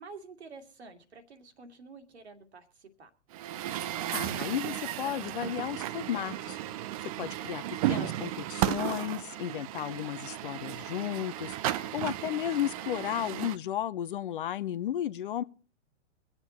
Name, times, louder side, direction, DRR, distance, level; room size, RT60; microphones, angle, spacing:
voice 1, 0.0-3.1, right 4 dB, 65° right, 2.3 m, -49 dB
Truck, 3.3-13.6, right 13 dB, 30° right, 0.6 m, -34 dB
voice 2, 4.1-6.6 7.0-15.4, left 11 dB, 45° left, 0.7 m, -34 dB
23.5 x 8.1 x 4.2 m
figure-of-eight pair, 110°, 35 cm